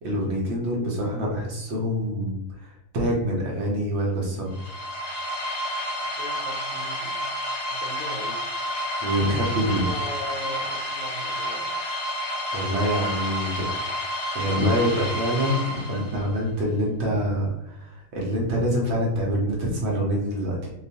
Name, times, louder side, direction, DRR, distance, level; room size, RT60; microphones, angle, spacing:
voice 1, 0.0-4.5 9.0-9.9 12.5-13.6 14.3-20.7, equal, 60° right, -2 dB, 0.8 m, -26 dB
sound 1, 4.5-16.3, equal, 40° left, 0.6 m, -30 dB
voice 2, 6.0-7.2 7.7-8.5 9.6-11.7, left 2 dB, 70° left, 1 dB, 0.9 m, -38 dB
2.3 x 2.3 x 2.7 m, 0.86 s
omnidirectional pair, 1.4 m